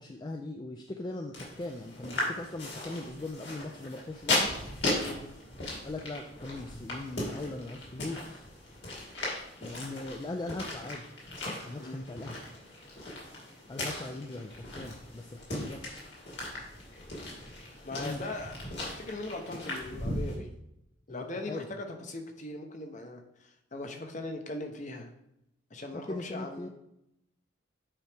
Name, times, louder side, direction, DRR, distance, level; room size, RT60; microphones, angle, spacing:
voice 1, 0.0-4.5 5.8-8.5 9.6-11.1 11.7-12.4 13.7-16.1 18.0-18.2 21.1-21.8 25.9-26.7, left 2 dB, 20° left, 4 dB, 0.3 m, -40 dB
sound 1, 1.3-20.4, left 1 dB, 60° left, 2.5 m, -37 dB
voice 2, 5.0-5.3 11.8-12.0 16.5-16.6 17.8-18.5 18.8-20.5 21.1-25.1 25.7-26.7, left 2 dB, 40° left, 5 dB, 0.8 m, -40 dB
8.8 x 4.6 x 3.4 m, 0.83 s
head